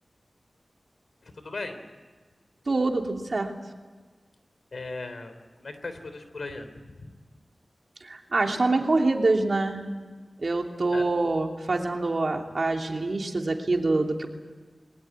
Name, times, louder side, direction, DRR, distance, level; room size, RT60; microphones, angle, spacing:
voice 1, 1.2-1.8 4.7-7.1 10.9-11.0, left 3 dB, 80° left, 9 dB, 3.4 m, -38 dB
voice 2, 2.7-3.5 8.0-9.8 10.4-14.3, right 2 dB, 60° right, 3 dB, 3.0 m, -25 dB
22.0 x 20.0 x 9.7 m, 1.4 s
wide cardioid pair, 65°, 0 cm